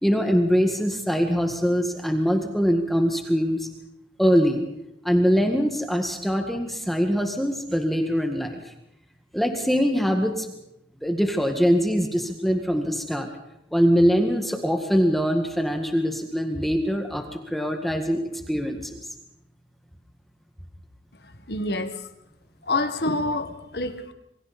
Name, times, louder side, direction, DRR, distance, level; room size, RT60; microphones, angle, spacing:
voice 1, 0.0-3.7 4.2-4.6 5.0-8.7 9.3-10.5 11.0-13.3 13.7-19.0, equal, ahead, 4 dB, 1.8 m, -23 dB
voice 2, 21.2-22.1 22.6-24.1, left 2 dB, 60° left, 9 dB, 1.8 m, -27 dB
27.0 x 23.5 x 4.3 m, 0.84 s
head